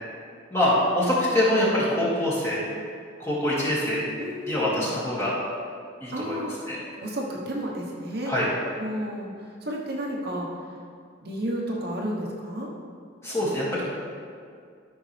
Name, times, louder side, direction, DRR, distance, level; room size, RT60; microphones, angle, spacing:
voice 1, 0.5-2.6 3.2-4.0 4.5-5.3 6.0-6.4 6.7-6.8 8.3-8.5 13.2-13.8, left 1 dB, 15° left, -8 dB, 2.2 m, -24 dB
voice 2, 4.2-4.9 6.1-6.5 7.0-8.3 8.8-9.3 9.6-10.5 11.2-12.7, equal, 50° right, -3 dB, 1.2 m, -31 dB
13.0 x 5.9 x 3.4 m, 2.3 s
head